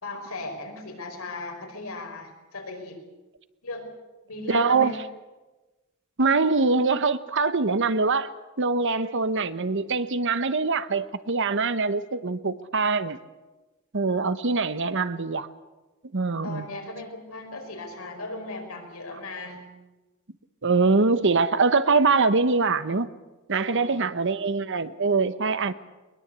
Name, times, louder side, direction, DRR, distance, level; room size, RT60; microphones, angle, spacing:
voice 1, 0.0-3.0 3.6-3.9 4.3-5.0 16.4-19.7 23.6-24.1, left 2 dB, 80° left, 3 dB, 5.1 m, -37 dB
voice 2, 4.5-4.9 6.2-8.3 8.6-13.2 13.9-15.5 16.1-16.7 20.6-23.1 23.5-25.7, right 4 dB, 60° right, 13 dB, 1.0 m, -23 dB
21.5 x 21.5 x 8.2 m, 1.1 s
head